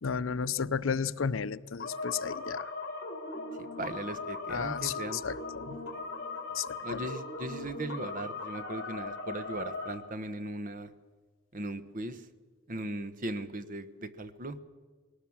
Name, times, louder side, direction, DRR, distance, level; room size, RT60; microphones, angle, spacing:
voice 1, 0.0-2.7 4.5-5.8 6.5-7.1, left 6 dB, 75° left, 16 dB, 0.6 m, -33 dB
sound 1, 1.8-9.9, left 3 dB, 55° left, 4.9 m, -39 dB
voice 2, 3.6-5.2 6.8-10.9 11.5-12.2 12.7-14.6, right 1 dB, 40° right, 10 dB, 1.2 m, -38 dB
21.0 x 18.5 x 7.3 m, 1.5 s
head